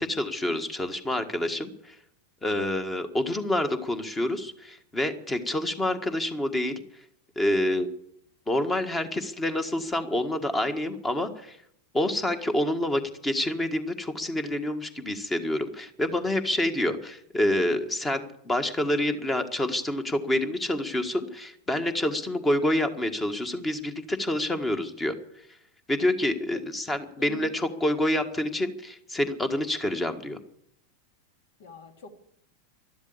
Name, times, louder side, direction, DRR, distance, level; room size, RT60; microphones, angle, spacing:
voice 1, 0.0-1.9 2.4-6.7 7.3-7.9 8.5-11.6 11.9-25.1 25.9-30.4, left 1 dB, 15° left, 9 dB, 1.6 m, -27 dB
voice 2, 27.2-27.6 31.6-32.1, left 5 dB, 55° left, 6 dB, 2.4 m, -44 dB
12.5 x 12.0 x 8.5 m, 0.73 s
figure-of-eight pair, 90°, 0 cm